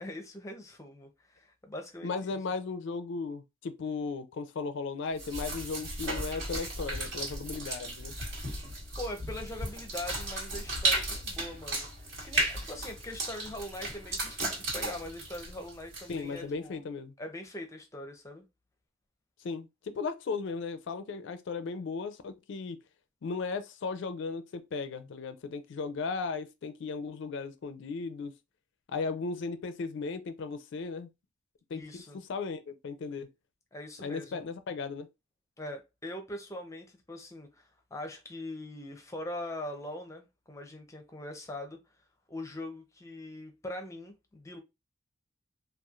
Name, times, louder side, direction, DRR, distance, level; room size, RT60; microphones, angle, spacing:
voice 1, 0.0-2.4 9.0-16.8 17.2-18.4 31.7-32.2 33.7-34.5 35.6-41.8 42.3-44.6, left 1 dB, 15° left, 0.6 m, -42 dB
voice 2, 2.0-8.1 16.1-17.1 19.4-22.8 23.2-28.3 28.9-31.1 31.7-32.0 32.3-33.3 34.0-35.1, left 4 dB, 65° left, 0.4 m, -36 dB
sound 1, 5.2-16.4, right 2 dB, 65° right, 1.7 m, -35 dB
3.0 x 2.4 x 2.3 m
head